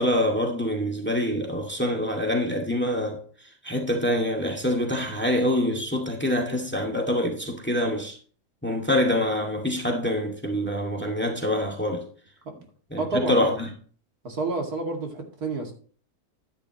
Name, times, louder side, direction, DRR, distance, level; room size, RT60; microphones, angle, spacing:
voice 1, 0.0-8.2 8.6-12.0 12.9-13.7, left 1 dB, 5° left, 2.0 m, -25 dB
voice 2, 13.0-13.4 14.2-15.7, right 3 dB, 70° right, 2.8 m, -29 dB
11.5 x 10.5 x 3.0 m
omnidirectional pair, 1.7 m